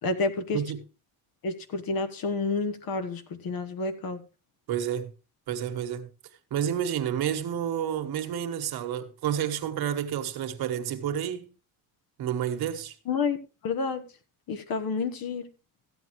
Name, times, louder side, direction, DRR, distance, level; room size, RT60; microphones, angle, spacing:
voice 1, 0.0-0.6 1.4-4.2 13.1-13.4 13.6-14.0 14.5-15.5, left 4 dB, 70° left, 1.3 m, -29 dB
voice 2, 4.7-5.1 5.5-6.1 6.5-11.5 12.2-13.0, right 9 dB, 85° right, 1.4 m, -30 dB
14.5 x 9.0 x 3.1 m
cardioid pair, 110°, 37 cm